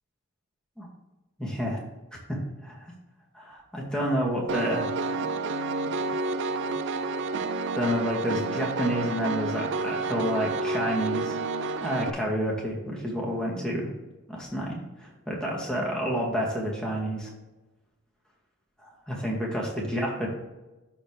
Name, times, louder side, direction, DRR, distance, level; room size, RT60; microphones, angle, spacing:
voice 1, 1.4-1.8 2.3-2.9 3.3-4.9 7.8-11.4 11.8-13.9 14.3-17.3 18.8-20.3, equal, 5° left, -3 dB, 2.2 m, -29 dB
Piano, 4.5-12.1, right 3 dB, 55° right, 0.5 m, -30 dB
13.0 x 4.4 x 3.4 m, 1.1 s
head